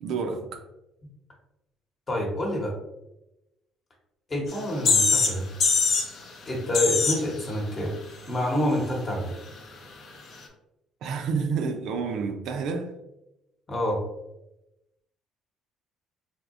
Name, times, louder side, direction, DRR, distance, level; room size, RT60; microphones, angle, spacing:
voice 1, 0.0-0.6 11.0-12.9, right 5 dB, 70° right, 0.4 m, -29 dB
voice 2, 2.1-2.7 4.3-5.5 6.5-7.9 8.3-9.4 13.7-14.0, left 1 dB, 30° left, 0.9 m, -27 dB
sound 1, 4.5-4.6 4.9-5.4 5.6-6.1 6.7-7.2, left 4 dB, 55° left, 0.6 m, -21 dB
3.5 x 2.7 x 2.5 m
cardioid pair, 110°, 0 cm